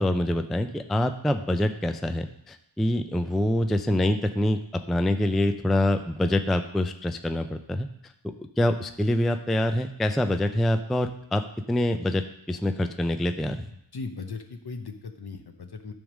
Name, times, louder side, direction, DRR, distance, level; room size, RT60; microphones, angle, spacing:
voice 1, 0.0-7.9 8.4-13.7, left 1 dB, ahead, 8 dB, 0.4 m, -25 dB
voice 2, 13.9-15.9, left 4 dB, 55° left, 6 dB, 1.0 m, -38 dB
10.5 x 3.7 x 6.2 m, 0.76 s
wide cardioid pair, 70°, 46 cm